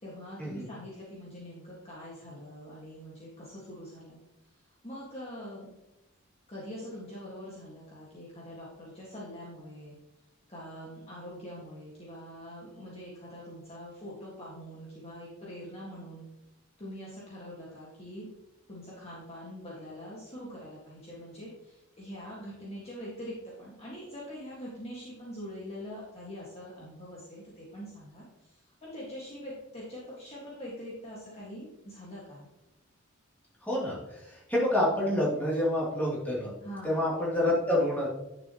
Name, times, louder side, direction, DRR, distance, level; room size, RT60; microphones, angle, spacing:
voice 1, 0.0-4.2 4.8-5.7 6.5-10.0 10.5-16.3 16.8-18.3 18.7-32.5 36.6-37.0, equal, 30° left, -6 dB, 1.8 m, -44 dB
voice 2, 34.5-36.5 36.8-38.1, left 1 dB, 10° left, -7 dB, 2.9 m, -27 dB
10.0 x 6.5 x 3.0 m, 0.91 s
head